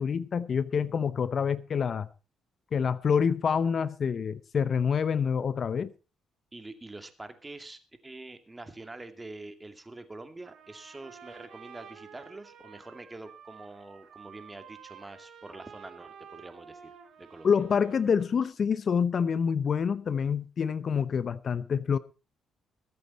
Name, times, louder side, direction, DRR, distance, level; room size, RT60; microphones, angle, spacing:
voice 1, 0.0-2.1 2.7-5.9 17.4-22.0, left 6 dB, 50° left, 0.8 m, -27 dB
voice 2, 6.5-17.5, right 2 dB, 20° right, 2.3 m, -45 dB
Trumpet, 10.4-18.5, right 7 dB, 70° right, 3.5 m, -51 dB
21.5 x 8.4 x 4.2 m
cardioid pair, 90°, 0 cm